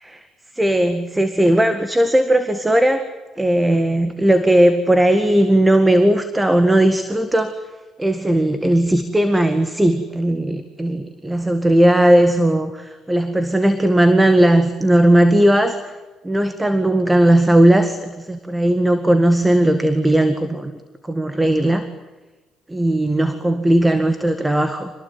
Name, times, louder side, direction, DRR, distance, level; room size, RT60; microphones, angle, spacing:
voice 1, 0.5-3.1 3.4-7.6 8.0-15.9 16.2-20.7 21.1-21.9 22.7-24.9, right 1 dB, 10° right, 9 dB, 1.9 m, -17 dB
26.5 x 20.0 x 9.6 m, 1.2 s
cardioid pair, 120°, 0 cm